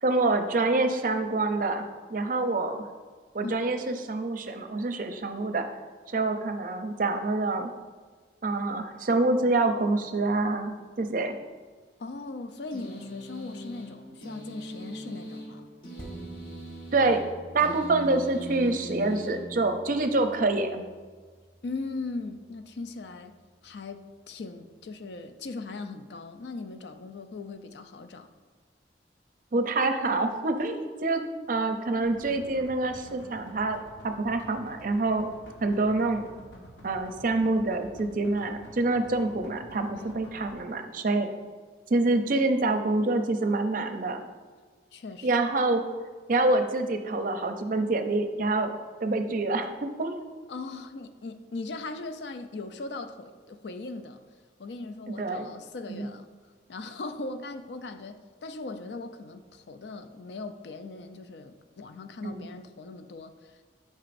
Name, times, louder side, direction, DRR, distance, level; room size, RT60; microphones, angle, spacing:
voice 1, 0.0-1.8 2.1-2.9 3.3-5.7 6.1-7.7 8.4-11.4 16.9-17.2 17.5-20.8 29.5-31.2 31.5-33.8 34.0-35.3 35.6-36.2 36.8-41.3 41.9-44.2 45.2-45.8 46.3-48.7 49.0-50.2 55.1-55.5 55.9-56.1 62.2-62.5, right 2 dB, 50° right, 7 dB, 0.5 m, -26 dB
voice 2, 12.0-15.7 21.6-23.4 23.6-28.3 39.9-40.1 44.9-45.3 50.5-54.2 54.6-56.3 56.7-63.6, left 3 dB, 70° left, 8 dB, 0.4 m, -39 dB
sound 1, 12.7-20.1, right 1 dB, 50° left, 1.3 m, -41 dB
sound 2, 16.0-24.8 25.2-25.3, right 1 dB, 5° left, 0.7 m, -50 dB
sound 3, 32.0-40.5, equal, 85° left, 1.1 m, -49 dB
8.8 x 5.5 x 2.6 m, 1.5 s
head